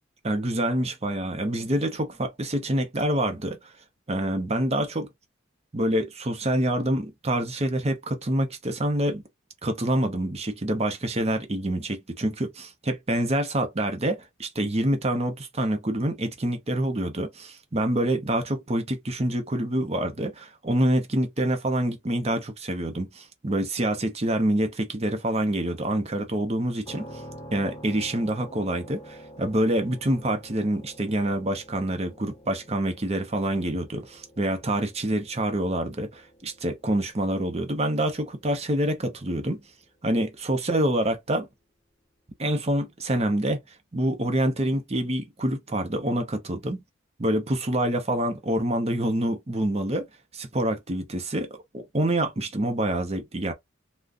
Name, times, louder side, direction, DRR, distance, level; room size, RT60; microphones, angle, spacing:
voice 1, 0.2-3.6 4.1-5.1 5.7-9.2 9.6-27.1 27.5-39.6 40.0-41.5 42.4-43.6 43.9-46.8 47.2-50.1 50.3-51.5 51.7-53.5, right 1 dB, 30° right, 0.8 m, -26 dB
sound 1, 26.9-40.6, equal, 20° left, 0.9 m, -48 dB
3.6 x 2.3 x 2.6 m
head